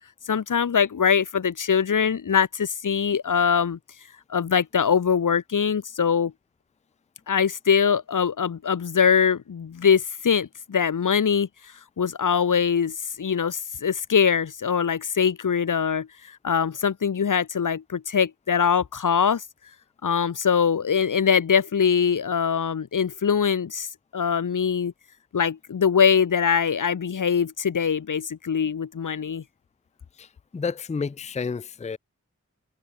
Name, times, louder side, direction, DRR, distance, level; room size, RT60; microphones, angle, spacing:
voice 1, 0.3-3.8 4.3-6.3 7.3-11.5 12.0-19.4 20.0-23.9 24.1-24.9 25.3-29.4, left 7 dB, 75° left, 0.7 m, -22 dB
voice 2, 30.5-32.0, left 5 dB, 25° left, 0.4 m, -30 dB
wide cardioid pair, 45°, 31 cm